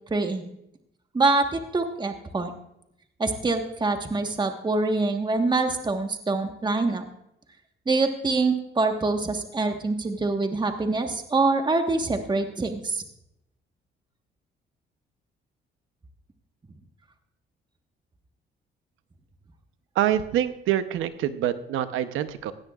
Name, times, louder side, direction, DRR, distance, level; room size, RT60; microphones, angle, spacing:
voice 1, 0.1-0.5 1.1-2.5 3.2-7.0 7.9-13.0, right 3 dB, 20° right, 5 dB, 1.3 m, -25 dB
voice 2, 20.0-22.5, right 11 dB, 90° right, 11 dB, 0.8 m, -26 dB
17.0 x 16.0 x 2.4 m, 0.81 s
cardioid pair, 90°, 20 cm